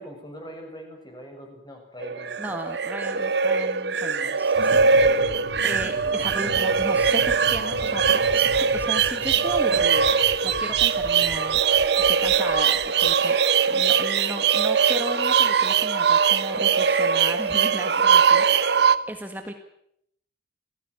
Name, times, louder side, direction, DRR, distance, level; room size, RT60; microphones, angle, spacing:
voice 1, 0.0-2.4, equal, 20° left, 3 dB, 6.9 m, -42 dB
sound 1, 2.0-19.0, right 6 dB, 65° right, 1.1 m, -21 dB
voice 2, 2.4-10.1 10.4-11.6 12.0-13.4 13.7-19.5, right 1 dB, 10° right, 5 dB, 1.8 m, -36 dB
sound 2, 4.6-13.1, equal, 60° left, 2.0 m, -40 dB
29.0 x 17.5 x 9.7 m, 0.76 s
head